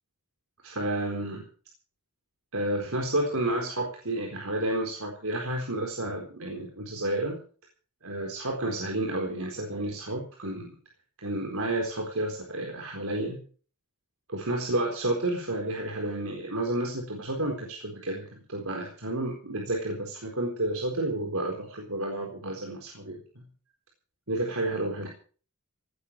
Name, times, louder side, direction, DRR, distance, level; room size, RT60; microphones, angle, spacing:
voice 1, 0.6-1.5 2.5-7.4 8.0-10.7 11.2-13.4 14.3-23.2 24.3-25.1, right 1 dB, 75° right, 1 dB, 4.2 m, -31 dB
18.0 x 14.5 x 4.7 m, 0.41 s
head